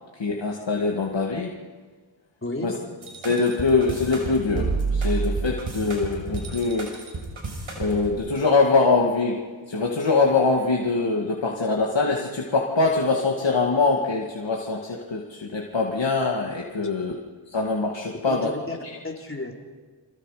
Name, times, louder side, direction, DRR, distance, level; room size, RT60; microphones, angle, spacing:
voice 1, 0.2-1.5 2.6-2.8 3.2-6.9 7.8-17.2 17.5-18.5 18.8-18.9, left 3 dB, 65° left, -1 dB, 2.3 m, -23 dB
voice 2, 2.4-3.0 16.8-16.9 18.3-18.8 19.0-19.5, left 2 dB, 25° left, 0 dB, 4.0 m, -33 dB
sound 1, 3.0-8.1, right 4 dB, 90° right, 6.1 m, -29 dB
29.5 x 25.5 x 5.1 m, 1.5 s
wide cardioid pair, 80°, 47 cm